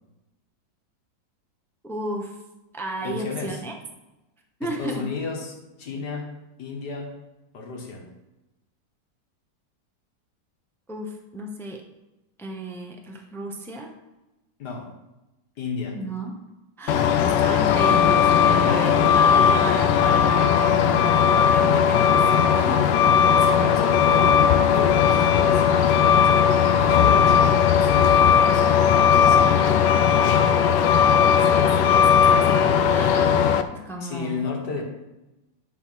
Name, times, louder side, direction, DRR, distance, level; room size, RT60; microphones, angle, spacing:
voice 1, 1.8-2.4 2.7-3.7 4.6-5.1 10.9-11.8 12.4-13.9 15.9-16.4 16.8-22.9 23.1-23.3 31.4-34.5, right 1 dB, ahead, 2 dB, 0.8 m, -33 dB
voice 2, 3.0-3.6 4.6-6.3 6.6-7.2 7.5-8.1 14.6-14.9 15.6-16.0 18.5-18.9 23.4-26.4 26.8-29.9 34.0-34.8, left 4 dB, 70° left, 1 dB, 2.1 m, -33 dB
Truck, 16.9-33.6, left 7 dB, 90° left, 1.3 m, -18 dB
10.0 x 4.2 x 5.8 m, 1.0 s
omnidirectional pair, 1.8 m